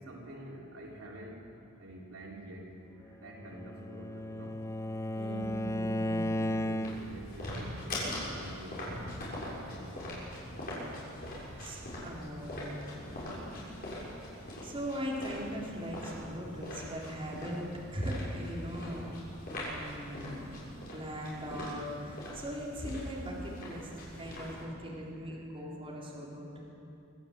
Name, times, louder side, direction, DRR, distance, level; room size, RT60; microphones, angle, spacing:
voice 1, 0.0-1.5 1.8-4.6 6.3-9.0 9.6-10.7 13.6-13.9 24.2-24.3 25.1-25.4, right 1 dB, 90° right, -2 dB, 3.5 m, -48 dB
Bowed string instrument, 3.3-7.3, left 1 dB, 15° left, 0.5 m, -34 dB
voice 2, 4.9-6.3 11.6-14.0 14.3-19.2 19.5-23.9 24.1-26.6, equal, 25° right, -4 dB, 3.9 m, -40 dB
sound 1, 6.8-24.6, left 1 dB, 45° left, 6.7 m, -42 dB
24.0 x 13.0 x 8.3 m, 2.8 s
head